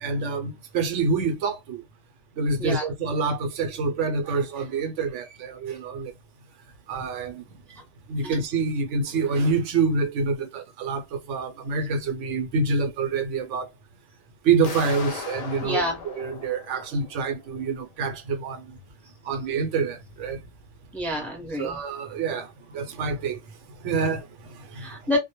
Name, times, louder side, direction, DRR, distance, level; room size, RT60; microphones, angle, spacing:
voice 1, 0.0-1.8 2.4-6.1 6.9-7.4 8.1-13.7 14.4-18.6 19.2-20.4 21.6-23.4 23.8-25.0, right 4 dB, 80° right, 0.9 m, -27 dB
sound 1, 14.6-17.5, left 5 dB, 80° left, 0.3 m, -38 dB
voice 2, 15.6-16.0 20.9-21.8 24.7-25.2, left 1 dB, ahead, 0.6 m, -28 dB
2.2 x 2.1 x 2.8 m
omnidirectional pair, 1.2 m